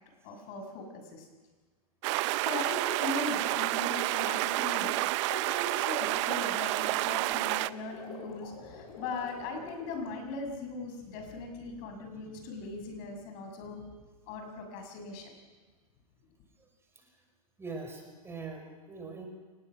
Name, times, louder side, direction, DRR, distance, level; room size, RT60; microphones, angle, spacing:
voice 1, 0.2-1.3 2.2-4.9 5.3-13.8 14.3-15.3, left 3 dB, 45° left, 4 dB, 6.7 m, -39 dB
sound 1, 2.0-7.7, right 19 dB, 50° right, 0.7 m, -30 dB
sound 2, 5.4-10.2, left 3 dB, 60° left, 7.0 m, -48 dB
voice 2, 17.6-19.3, right 4 dB, 15° right, 2 dB, 6.0 m, -42 dB
29.0 x 19.5 x 6.3 m, 1.3 s
hypercardioid pair, 115°, 19 cm